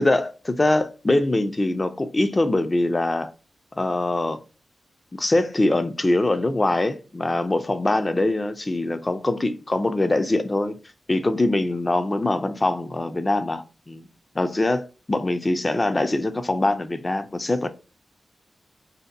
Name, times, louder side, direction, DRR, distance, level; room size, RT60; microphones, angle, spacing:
voice 1, 0.0-3.3 3.7-4.4 5.1-10.8 11.1-14.1 14.4-17.7, left 2 dB, 30° left, 0.4 m, -23 dB
2.7 x 2.5 x 2.4 m
cardioid pair, 50°, 0 cm